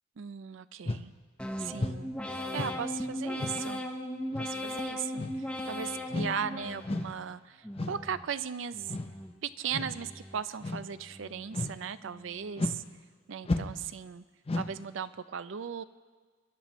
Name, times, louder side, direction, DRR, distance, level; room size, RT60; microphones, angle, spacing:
voice 1, 0.2-1.1 1.6-3.8 4.4-8.9 9.4-12.8 13.3-14.2 14.6-15.8, right 7 dB, 70° right, 14 dB, 0.4 m, -37 dB
sound 1, 0.9-1.1 1.8-2.1 2.6-2.8 3.4-3.7 4.3-4.5 5.2-5.5 6.1-6.4 6.8-7.2 7.8-8.1 8.9-9.1 9.7-10.0 10.6-10.9 11.5-11.9 12.6-12.9 13.4-13.9 14.5-14.8, left 2 dB, 30° left, 0.5 m, -34 dB
sound 2, 1.4-7.2 7.6-8.3 8.7-9.4 9.8-10.5 10.9-11.5 12.0-12.6, left 1 dB, 5° left, 0.9 m, -38 dB
25.0 x 11.0 x 3.1 m, 1.5 s
head